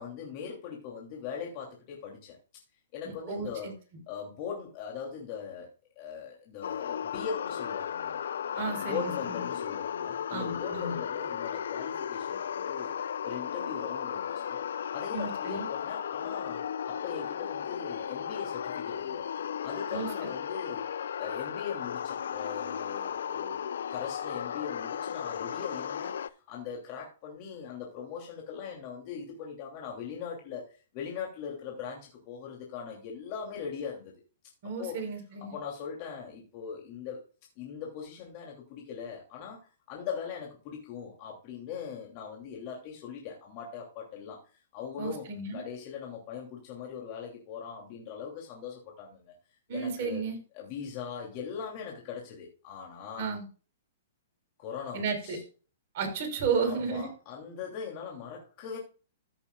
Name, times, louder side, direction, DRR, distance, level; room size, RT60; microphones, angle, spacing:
voice 1, 0.0-2.4 2.9-3.7 4.1-5.7 6.0-8.2 8.5-12.9 13.2-14.6 14.9-19.2 19.6-20.8 21.2-23.6 23.9-34.1 34.8-35.0 35.4-37.2 37.6-39.6 39.9-44.4 44.7-45.2 45.5-49.3 49.7-50.2 50.5-53.3 54.6-55.4 56.6-58.8, left 7 dB, 45° left, -1 dB, 2.8 m, -40 dB
voice 2, 3.0-3.7 8.6-9.4 10.3-11.0 15.1-15.7 19.9-20.1 34.6-35.5 45.0-45.6 49.7-50.4 53.2-53.4 54.9-55.4 55.9-57.1, right 5 dB, 50° right, 3 dB, 4.4 m, -33 dB
sound 1, 6.6-26.3, left 8 dB, 75° left, 0.5 m, -35 dB
15.0 x 6.9 x 2.4 m, 0.35 s
hypercardioid pair, 135°, 0 cm